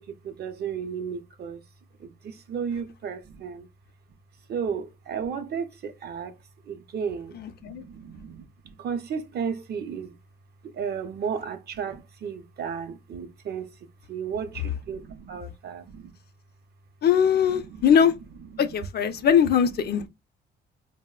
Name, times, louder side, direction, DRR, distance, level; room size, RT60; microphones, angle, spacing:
voice 1, 0.0-1.6 2.0-3.7 4.5-6.3 6.7-10.2 10.6-13.7 14.1-16.1 17.7-17.8 18.6-18.7, right 6 dB, 55° right, 0.5 m, -34 dB
voice 2, 7.3-7.8 17.0-18.1 18.6-20.1, left 8 dB, 55° left, 0.4 m, -21 dB
4.0 x 2.0 x 2.3 m
cardioid pair, 90°, 20 cm